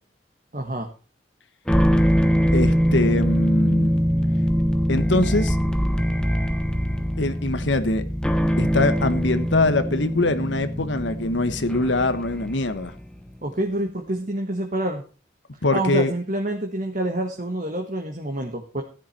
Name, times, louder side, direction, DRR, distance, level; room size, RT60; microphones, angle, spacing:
voice 1, 0.5-0.9 13.4-15.0 15.7-18.8, right 1 dB, 45° right, 1.6 m, -27 dB
sound 1, 1.7-13.1, equal, 5° left, 1.0 m, -22 dB
voice 2, 2.5-3.9 4.9-5.6 7.2-8.0 8.6-12.9 15.6-16.1, left 2 dB, 85° left, 1.4 m, -23 dB
14.0 x 10.5 x 4.4 m
head